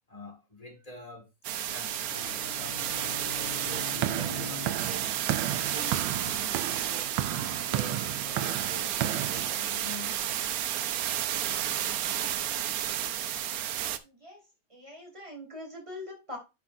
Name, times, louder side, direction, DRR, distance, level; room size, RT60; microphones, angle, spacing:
voice 1, 0.1-1.3 1.7-10.3, left 2 dB, 20° left, 1.8 m, -46 dB
sound 1, 1.4-14.0, right 11 dB, 65° right, 1.0 m, -32 dB
sound 2, 1.6-7.4, left 7 dB, 60° left, 1.8 m, -46 dB
sound 3, 3.7-9.5, right 12 dB, 90° right, 1.3 m, -33 dB
voice 2, 14.0-14.4 14.7-16.4, left 1 dB, 15° right, 3.5 m, -43 dB
10.0 x 6.1 x 2.5 m
omnidirectional pair, 2.0 m